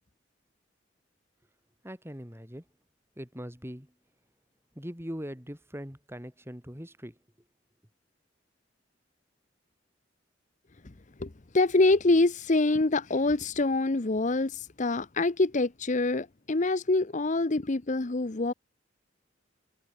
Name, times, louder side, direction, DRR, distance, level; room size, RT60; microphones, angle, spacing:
voice 1, 1.8-2.6 3.2-3.9 4.7-7.1, equal, 15° right, 7.9 m, -41 dB
voice 2, 11.2-18.5, left 2 dB, 40° left, 0.9 m, -25 dB
head